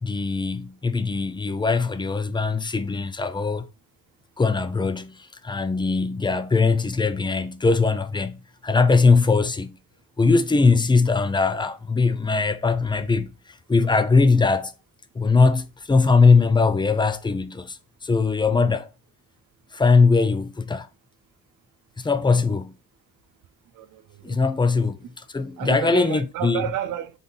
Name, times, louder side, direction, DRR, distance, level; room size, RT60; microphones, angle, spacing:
voice 1, 0.0-3.6 4.4-9.8 10.2-13.3 13.7-14.7 15.1-18.9 19.7-20.9 22.0-22.7 24.2-25.0 25.3-26.6, left 4 dB, 15° left, 0.5 m, -21 dB
voice 2, 23.7-24.7 25.6-27.2, right 11 dB, 85° right, 0.7 m, -32 dB
3.8 x 3.5 x 3.9 m
cardioid pair, 90°, 30 cm